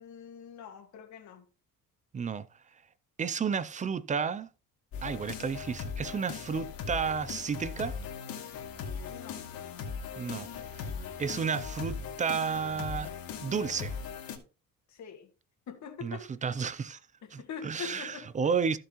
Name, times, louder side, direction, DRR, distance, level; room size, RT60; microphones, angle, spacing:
voice 1, 0.0-1.5 9.1-9.4 14.9-15.3 15.7-16.3 17.2-18.3, left 7 dB, 50° left, 1.8 m, -43 dB
voice 2, 2.1-2.5 3.2-4.5 5.0-8.0 10.2-10.9 11.2-13.1 13.4-14.0 16.0-17.0 17.3-18.8, right 6 dB, 20° right, 0.4 m, -32 dB
sound 1, 4.9-14.4, left 6 dB, 80° left, 2.5 m, -39 dB
14.5 x 6.7 x 3.0 m
cardioid pair, 175°, 35 cm